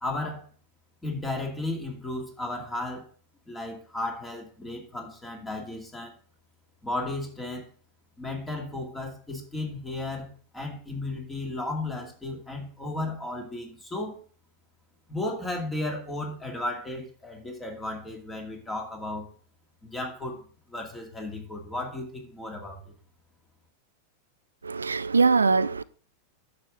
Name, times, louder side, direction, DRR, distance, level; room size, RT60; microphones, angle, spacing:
voice 1, 0.0-0.4 1.0-3.1 3.5-6.1 6.8-7.7 8.2-14.2 15.1-19.3 19.8-20.4 20.7-22.8, left 2 dB, 10° left, 2.4 m, -34 dB
voice 2, 24.6-25.8, right 4 dB, 75° right, 0.3 m, -22 dB
10.0 x 6.8 x 3.7 m
figure-of-eight pair, 90°, 0 cm